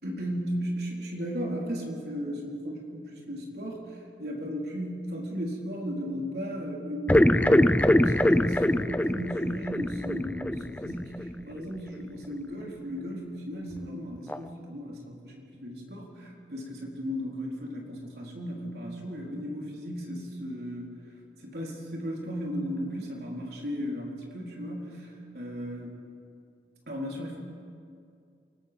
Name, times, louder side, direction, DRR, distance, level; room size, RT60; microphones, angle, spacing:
voice 1, 0.0-20.9 21.4-25.9 26.9-27.4, equal, 60° right, -2 dB, 4.2 m, -35 dB
sound 1, 7.1-11.3 11.6-11.7 13.8-13.9 14.3-14.4, left 1 dB, 10° left, 0.5 m, -23 dB
28.5 x 19.5 x 5.4 m, 2.4 s
head